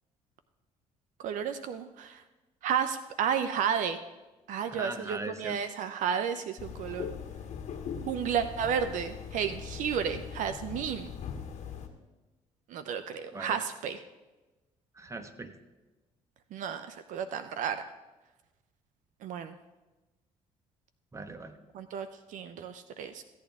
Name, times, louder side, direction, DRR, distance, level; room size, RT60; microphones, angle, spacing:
voice 1, 1.2-2.2 2.6-4.0 4.5-7.1 8.1-11.1 12.7-14.0 16.5-17.8 19.2-19.5 21.7-23.2, right 8 dB, 70° right, 10 dB, 0.5 m, -32 dB
voice 2, 4.7-5.6 13.3-13.6 14.9-15.5 21.1-21.6, right 3 dB, 20° right, 8 dB, 1.1 m, -39 dB
sound 1, 6.6-11.9, left 7 dB, 60° left, 1.5 m, -40 dB
15.0 x 8.6 x 3.6 m, 1.1 s
supercardioid pair, 75°, 13 cm